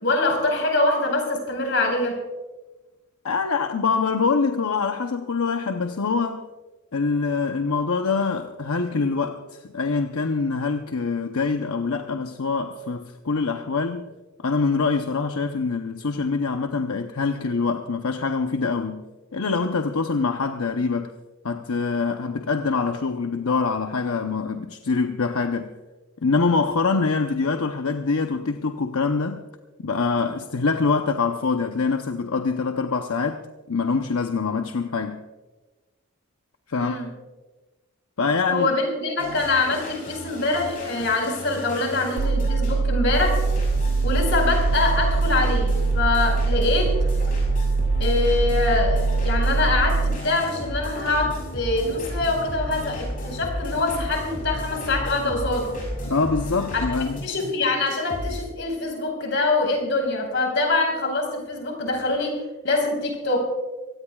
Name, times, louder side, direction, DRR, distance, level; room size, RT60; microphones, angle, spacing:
voice 1, 0.0-2.1 36.7-37.1 38.5-43.3 44.0-46.9 48.0-55.7 56.7-56.8 57.2-62.3 62.6-63.5, left 3 dB, 55° left, 2 dB, 4.8 m, -24 dB
voice 2, 3.2-6.5 6.9-14.1 14.4-19.0 19.3-21.1 21.4-25.7 26.2-29.4 29.8-33.4 33.7-35.2 36.7-37.0 38.2-38.7 56.0-57.2, left 4 dB, 80° left, 6 dB, 0.8 m, -24 dB
sound 1, 39.2-58.4, equal, 35° left, 6.7 m, -33 dB
sound 2, 42.2-50.2, right 4 dB, 75° right, 0.4 m, -22 dB
25.5 x 17.5 x 2.4 m, 1.2 s
head